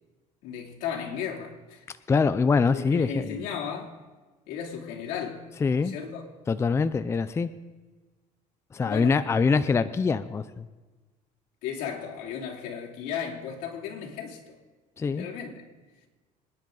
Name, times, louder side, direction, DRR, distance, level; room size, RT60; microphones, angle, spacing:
voice 1, 0.4-1.8 2.7-4.0 4.5-5.5 5.7-6.2 8.8-9.2 11.6-14.6 15.0-15.6, left 7 dB, 90° left, 3.0 m, -35 dB
voice 2, 2.1-3.5 5.6-5.9 6.5-7.5 8.7-10.7 15.0-15.3, left 5 dB, 20° left, 0.5 m, -24 dB
26.0 x 10.5 x 3.9 m
cardioid pair, 130°, 15 cm